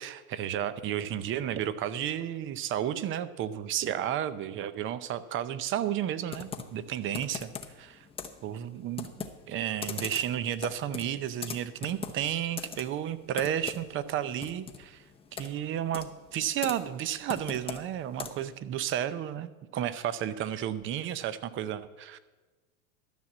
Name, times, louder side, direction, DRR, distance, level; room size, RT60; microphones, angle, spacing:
voice 1, 0.0-7.5 7.8-8.1 8.4-15.0 15.4-22.2, right 10 dB, 30° right, 14 dB, 0.6 m, -32 dB
Computer keyboard, 6.3-18.6, left 6 dB, 15° left, 0.7 m, -42 dB
12.5 x 5.9 x 7.4 m, 1.3 s
hypercardioid pair, 115°, 42 cm